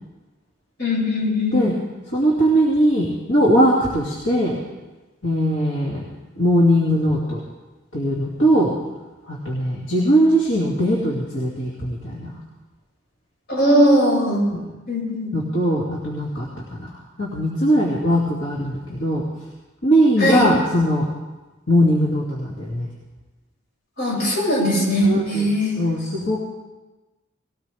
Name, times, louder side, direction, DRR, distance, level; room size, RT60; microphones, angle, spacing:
voice 1, 0.8-1.6 13.5-14.4 14.9-15.3 20.2-20.5 24.0-25.8, equal, 55° left, -5 dB, 7.0 m, -19 dB
voice 2, 2.1-4.6 5.2-6.0 6.4-7.4 7.9-8.7 9.3-12.3 14.5-14.6 15.3-19.2 19.8-21.1 21.7-22.9 25.0-25.4 25.8-26.4, equal, 70° left, -4 dB, 2.5 m, -20 dB
20.0 x 17.0 x 3.5 m, 1.1 s
head